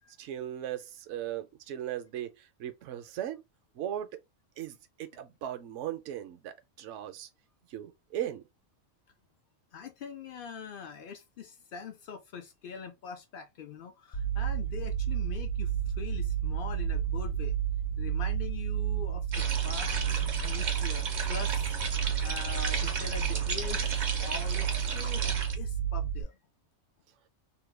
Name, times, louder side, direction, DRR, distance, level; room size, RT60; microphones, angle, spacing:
voice 1, 0.2-2.3 2.6-3.4 3.8-4.1 4.6-6.5 6.8-7.3 7.7-8.4, right 11 dB, 70° right, 0.9 m, -37 dB
voice 2, 9.7-17.6 18.0-25.3 25.5-26.4, left 6 dB, 70° left, 0.5 m, -43 dB
sound 1, 14.1-26.2, right 9 dB, 50° left, 0.9 m, -31 dB
sound 2, 19.3-25.5, right 5 dB, 55° right, 0.5 m, -35 dB
2.9 x 2.1 x 3.2 m
omnidirectional pair, 1.4 m